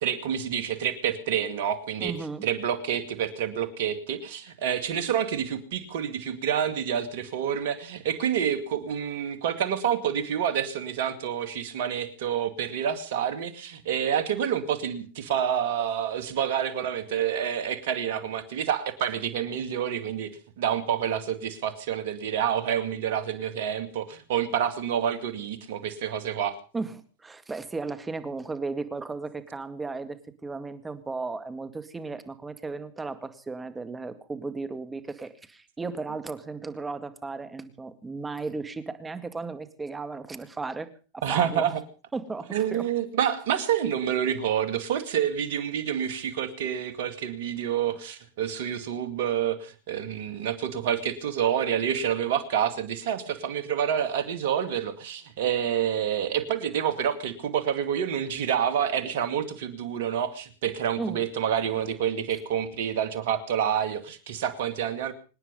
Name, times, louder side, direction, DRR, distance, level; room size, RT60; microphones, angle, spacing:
voice 1, 0.0-2.1 2.4-20.3 20.6-26.6 41.2-41.8 42.5-65.1, right 9 dB, 65° right, 11 dB, 2.4 m, -28 dB
voice 2, 2.0-2.4 26.7-40.9 41.1-41.7 42.1-42.9 61.0-61.2, right 3 dB, 15° right, 10 dB, 2.1 m, -35 dB
25.5 x 10.0 x 5.4 m, 0.38 s
hypercardioid pair, 100°, 0 cm